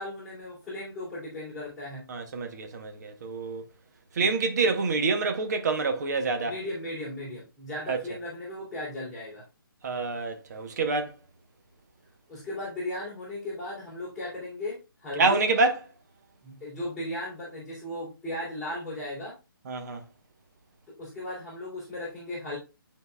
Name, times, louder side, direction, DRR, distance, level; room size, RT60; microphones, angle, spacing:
voice 1, 0.0-2.0 6.4-9.4 12.3-15.4 16.4-19.4 20.9-22.6, left 1 dB, ahead, 3.1 m, -36 dB
voice 2, 2.1-3.7 4.1-6.6 7.9-8.0 9.8-11.1 15.2-15.8 19.7-20.0, right 3 dB, 50° right, 1.1 m, -27 dB
10.5 x 4.1 x 2.3 m
figure-of-eight pair, 145°, 12 cm